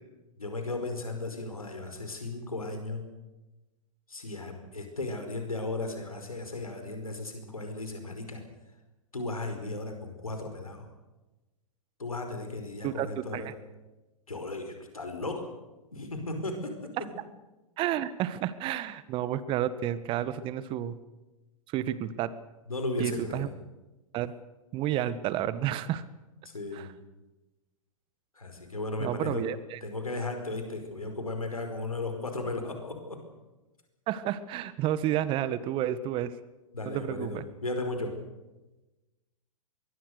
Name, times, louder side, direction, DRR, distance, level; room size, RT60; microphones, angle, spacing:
voice 1, 0.4-3.0 4.1-8.4 9.1-10.9 12.0-13.5 14.3-15.5 15.9-17.1 22.7-23.5 26.4-26.9 28.3-29.4 29.8-33.2 36.7-38.1, left 2 dB, 80° left, 5 dB, 5.0 m, -35 dB
voice 2, 17.8-21.0 21.7-22.3 23.0-23.5 24.1-24.3 24.7-26.0 26.7-26.9 29.0-29.8 34.1-36.3 36.8-37.4, right 11 dB, 30° right, 15 dB, 1.4 m, -31 dB
24.0 x 22.0 x 6.7 m, 1.1 s
figure-of-eight pair, 110°, 18 cm